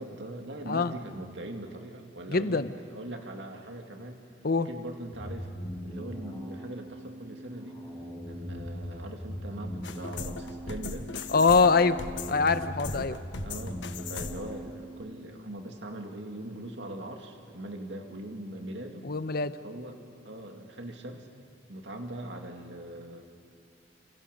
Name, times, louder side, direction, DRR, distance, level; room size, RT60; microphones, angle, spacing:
voice 1, 0.0-2.6 2.9-4.2 4.6-5.5 5.8-7.8 8.2-11.1 12.9-19.1 19.6-21.3 21.7-23.2, right 1 dB, 70° right, 3 dB, 2.6 m, -41 dB
voice 2, 2.3-2.7 4.4-4.7 11.3-12.0 12.3-13.2 19.0-19.6, left 4 dB, 55° left, 12 dB, 0.9 m, -24 dB
sound 1, 5.1-15.1, equal, 25° left, 7.5 m, -40 dB
sound 2, 9.8-14.6, left 4 dB, 85° left, 1.1 m, -39 dB
30.0 x 27.5 x 5.4 m, 2.7 s
head